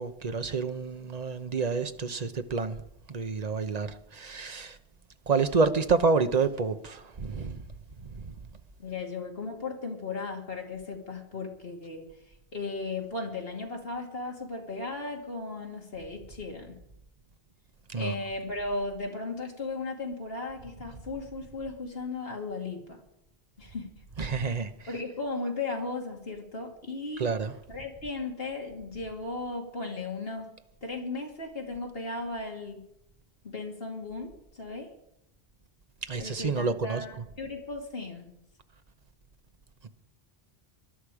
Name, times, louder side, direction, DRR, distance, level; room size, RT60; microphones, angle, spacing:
voice 1, 0.0-2.8 3.1-4.8 5.3-7.6 8.1-8.4 17.9-18.1 24.2-24.7 27.2-27.5 36.1-37.0, right 4 dB, 40° right, 1.0 m, -28 dB
voice 2, 8.8-12.1 12.5-16.8 17.9-23.0 23.6-23.9 24.3-24.6 24.9-27.3 27.7-30.5 30.8-32.8 33.4-34.9 36.2-38.3, left 3 dB, 65° left, 2.8 m, -36 dB
20.5 x 11.5 x 4.9 m
omnidirectional pair, 1.1 m